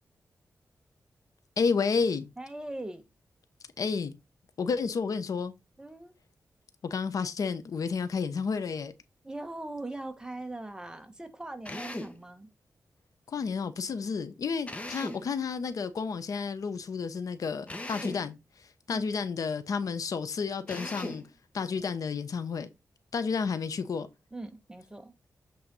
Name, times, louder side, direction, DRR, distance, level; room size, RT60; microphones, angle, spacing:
voice 1, 1.6-2.3 3.8-4.1 4.6-5.5 6.8-8.9 13.3-18.4 18.9-21.2 21.5-22.7 23.1-24.1, left 5 dB, 75° left, 0.9 m, -31 dB
voice 2, 2.4-3.0 5.8-6.1 9.2-12.5 18.9-19.2 24.3-25.1, right 2 dB, 15° right, 1.2 m, -40 dB
Drill, 11.6-12.2 14.7-15.3 17.7-18.3 20.7-21.3, left 1 dB, 20° left, 1.2 m, -38 dB
7.8 x 4.1 x 4.0 m
wide cardioid pair, 100°, 6 cm